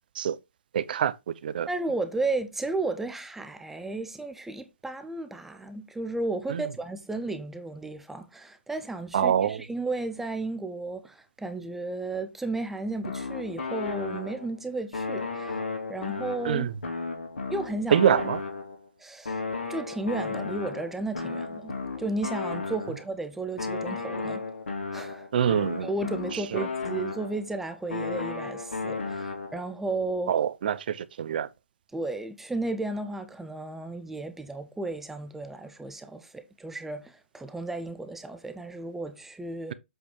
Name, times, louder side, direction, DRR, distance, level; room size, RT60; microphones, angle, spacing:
voice 1, 0.7-1.7 6.5-6.6 9.1-9.6 16.4-16.7 17.9-18.4 25.3-25.9 26.3-26.7 30.3-31.5, right 9 dB, 50° right, 0.7 m, -25 dB
voice 2, 1.7-15.6 15.9-16.7 17.5-18.1 19.0-19.4 19.7-21.7 22.0-24.4 24.9-25.3 25.8-30.4 31.9-39.7, right 2 dB, 5° right, 0.6 m, -33 dB
sound 1, 13.0-14.6 14.9-18.9 19.3-23.1 23.6-27.5 27.9-29.7, left 4 dB, 80° left, 2.1 m, -34 dB
7.8 x 3.4 x 4.5 m
hypercardioid pair, 145°, 6 cm